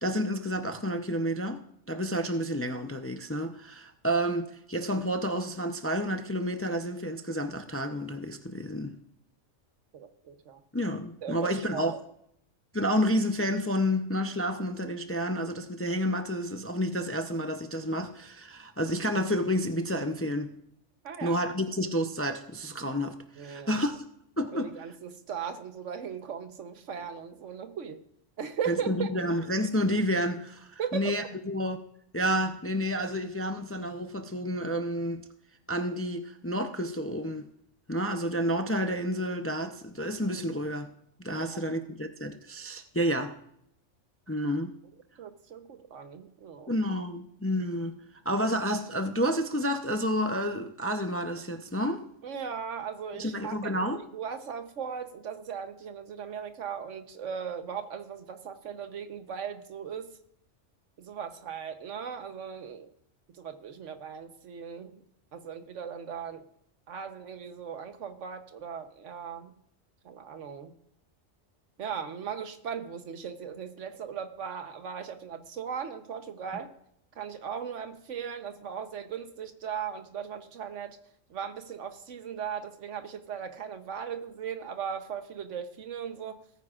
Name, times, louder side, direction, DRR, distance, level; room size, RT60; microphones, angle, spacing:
voice 1, 0.0-9.0 10.7-12.0 12.7-20.5 21.2-24.0 24.4-24.7 28.7-31.8 32.1-35.2 35.7-37.5 37.9-40.9 41.2-43.3 44.3-44.7 46.7-48.0 48.2-52.0 53.1-54.0, equal, 15° left, 0.4 m, -30 dB
voice 2, 9.9-10.6 11.2-12.0 21.0-21.4 23.4-23.9 24.5-28.0 28.4-29.1 30.8-31.3 41.4-41.6 45.2-46.7 52.2-60.1 61.0-62.9 63.4-64.9 65.3-66.4 66.9-69.5 70.0-70.7 71.8-76.7 77.2-81.0 81.3-86.4, right 7 dB, 80° right, 1.3 m, -38 dB
18.5 x 9.5 x 2.5 m
omnidirectional pair, 1.3 m